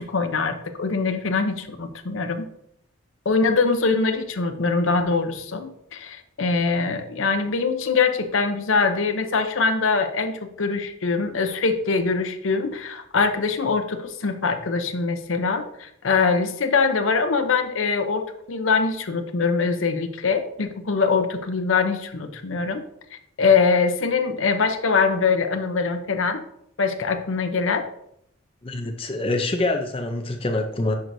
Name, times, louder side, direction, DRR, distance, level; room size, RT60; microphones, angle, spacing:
voice 1, 0.0-2.5 3.3-22.8 23.4-26.4 26.8-27.8, left 4 dB, 70° left, 6 dB, 0.7 m, -23 dB
voice 2, 28.6-31.0, left 2 dB, 25° left, 5 dB, 0.5 m, -25 dB
10.5 x 4.6 x 2.7 m, 0.74 s
head